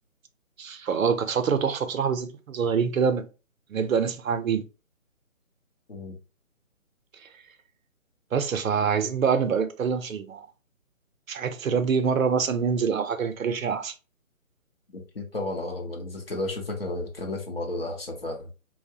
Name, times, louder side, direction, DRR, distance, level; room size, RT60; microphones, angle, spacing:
voice 1, 0.6-3.3 3.7-4.6 8.3-10.5 11.3-13.9, right 6 dB, 75° right, 0.6 m, -25 dB
voice 2, 14.9-18.5, left 2 dB, 45° left, 0.6 m, -33 dB
2.7 x 2.0 x 2.6 m
hypercardioid pair, 170°, 42 cm